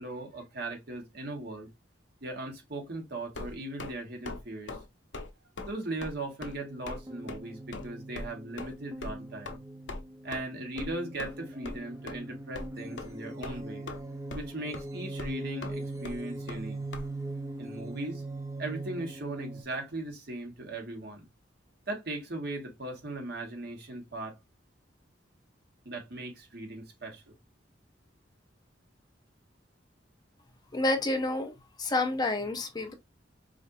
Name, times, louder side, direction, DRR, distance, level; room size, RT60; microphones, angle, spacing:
voice 1, 0.0-1.7 2.2-4.8 5.7-9.6 10.2-13.9 14.3-16.8 17.6-18.2 18.6-21.3 21.9-24.3 25.8-27.2, right 2 dB, 60° right, 1.3 m, -38 dB
sound 1, 3.3-3.9 4.2-4.4 4.7-4.9 5.1-5.3 5.6-5.7 6.0-6.1 6.4-6.6 6.9-7.0 7.3-7.4 7.7-7.9 8.1-8.3 8.6-8.7 9.0-9.1 9.4-9.6 9.9-10.0 10.3-10.4 10.8-10.9 11.2-11.4 11.6-11.8 12.1-12.2 12.5-12.7 13.0-13.1 13.4-14.0 14.3-14.5 14.7-14.8 15.2-15.3 15.6-15.7 16.0-16.2 16.5-16.6 16.9-17.0, left 2 dB, 80° left, 0.8 m, -39 dB
sound 2, 6.5-19.6, right 2 dB, 15° right, 0.6 m, -41 dB
voice 2, 30.7-31.5 31.8-32.9, left 2 dB, 20° left, 0.8 m, -29 dB
5.0 x 2.6 x 2.6 m
head